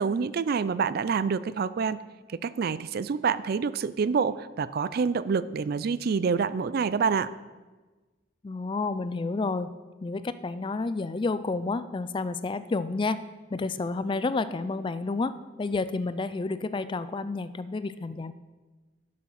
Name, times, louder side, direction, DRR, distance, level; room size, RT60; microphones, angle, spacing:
voice 1, 0.0-2.0 2.3-7.3, right 5 dB, 50° right, 16 dB, 0.3 m, -27 dB
voice 2, 8.4-9.7 10.0-13.2 13.5-15.3 15.6-18.3, left 3 dB, 25° left, 13 dB, 0.3 m, -30 dB
11.5 x 6.3 x 5.6 m, 1.3 s
head